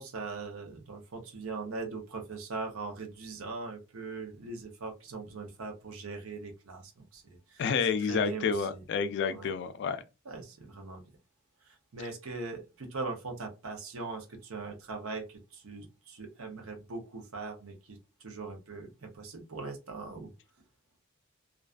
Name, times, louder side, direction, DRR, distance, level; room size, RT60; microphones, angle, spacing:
voice 1, 0.0-7.7 8.0-8.8 9.3-9.5 10.2-11.0 11.6-20.3, right 3 dB, 85° right, 0.7 m, -41 dB
voice 2, 7.6-10.0, left 5 dB, 60° left, 0.3 m, -29 dB
2.4 x 2.3 x 2.4 m
head